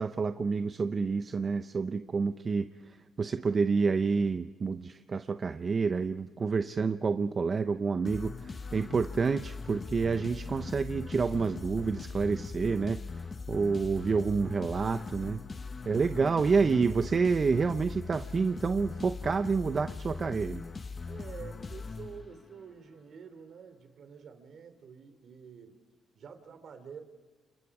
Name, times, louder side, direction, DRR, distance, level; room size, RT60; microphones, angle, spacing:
voice 1, 0.0-15.4 15.8-20.6, right 5 dB, 35° right, 10 dB, 0.7 m, -29 dB
sound 1, 8.0-22.6, left 4 dB, 30° left, 1.1 m, -40 dB
voice 2, 21.1-25.8 26.1-27.0, right 6 dB, 55° right, 9 dB, 3.1 m, -48 dB
29.5 x 29.0 x 5.0 m, 1.3 s
cardioid pair, 110°, 0 cm